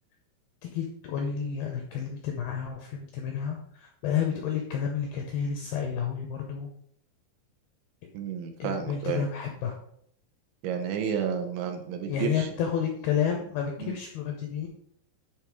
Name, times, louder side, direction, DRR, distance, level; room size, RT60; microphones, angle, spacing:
voice 1, 0.6-6.7 8.6-9.8 12.1-14.7, left 7 dB, 85° left, 2 dB, 2.2 m, -30 dB
voice 2, 8.1-9.2 10.6-12.5 13.8-13.9, right 7 dB, 80° right, 5 dB, 3.2 m, -31 dB
9.9 x 3.6 x 4.7 m, 0.68 s
omnidirectional pair, 5.3 m